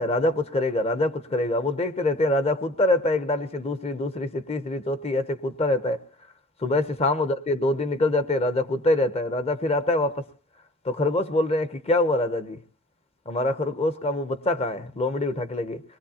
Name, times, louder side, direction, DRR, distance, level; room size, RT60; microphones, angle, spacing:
voice 1, 0.0-6.0 6.6-10.2 10.8-12.6 13.3-15.8, left 2 dB, 25° left, 0.8 m, -25 dB
24.5 x 20.0 x 2.8 m
head